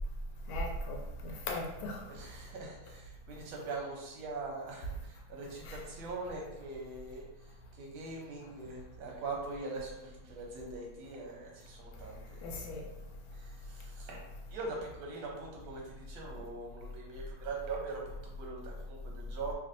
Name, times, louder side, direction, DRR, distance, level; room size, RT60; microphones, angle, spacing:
voice 1, 0.5-2.0 5.6-5.8 12.4-12.8, left 1 dB, 85° left, 1 dB, 1.4 m, -38 dB
voice 2, 2.0-12.8 13.3-14.2 14.5-19.5, right 3 dB, 80° right, -1 dB, 1.5 m, -42 dB
3.3 x 2.6 x 2.5 m, 0.93 s
omnidirectional pair, 2.2 m